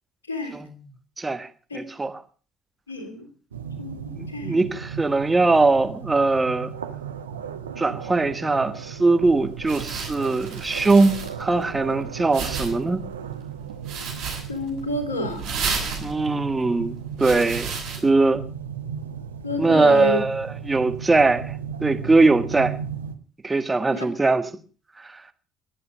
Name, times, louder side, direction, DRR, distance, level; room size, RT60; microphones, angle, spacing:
voice 1, 0.3-0.6 1.7-1.8 2.9-3.3 3.8-4.6 14.5-15.5 19.4-20.2 23.9-24.1, left 1 dB, 80° left, 2.7 m, -29 dB
voice 2, 1.2-1.5 1.7-2.2 4.2-6.7 7.8-13.0 16.0-17.7 18.0-18.4 19.6-22.7 23.4-24.5, right 3 dB, 20° right, 1.6 m, -21 dB
sound 1, 3.5-23.2, right 8 dB, 75° right, 0.9 m, -35 dB
sound 2, 9.2-18.0, right 5 dB, 60° right, 6.7 m, -34 dB
22.0 x 8.6 x 6.2 m
figure-of-eight pair, 50°, 0 cm